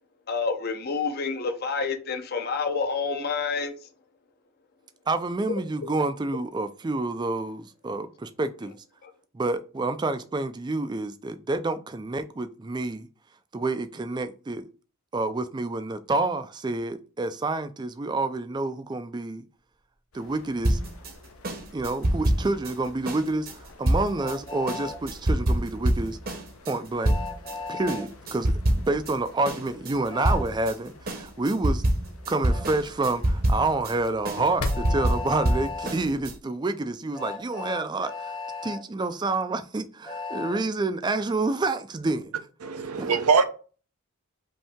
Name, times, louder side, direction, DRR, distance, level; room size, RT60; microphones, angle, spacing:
voice 1, 0.3-3.7 9.0-9.1, left 4 dB, 45° left, 0.6 m, -28 dB
voice 2, 5.1-8.8 9.3-13.1 13.5-14.6 15.1-19.4 20.1-20.8 21.7-26.2 26.7-27.2 27.7-28.5 28.9-31.8 32.3-38.4 38.6-42.3 43.0-43.1, right 2 dB, 20° right, 0.3 m, -28 dB
sound 1, 20.1-36.4, left 2 dB, 75° left, 0.8 m, -43 dB
sound 2, 20.6-27.6 27.9-29.2 29.4-36.4, right 1 dB, 40° right, 0.8 m, -26 dB
Train, 24.2-25.0 27.0-28.0 30.1-30.4 32.5-32.6 34.7-35.9 37.1-38.8 40.0-40.6, left 4 dB, 20° left, 0.9 m, -35 dB
voice 3, 42.6-43.4, right 5 dB, 85° right, 0.7 m, -22 dB
5.3 x 2.7 x 3.5 m
head